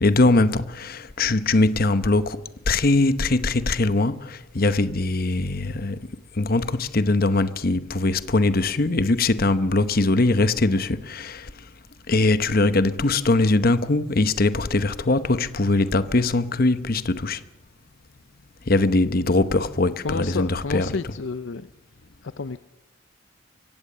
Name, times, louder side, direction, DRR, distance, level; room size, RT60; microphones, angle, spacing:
voice 1, 0.0-2.4 2.7-11.5 12.1-17.4 18.7-21.1, left 2 dB, 45° left, 0.9 m, -21 dB
voice 2, 20.0-21.7 22.4-22.6, left 4 dB, 70° left, 0.6 m, -30 dB
24.0 x 16.0 x 6.8 m
head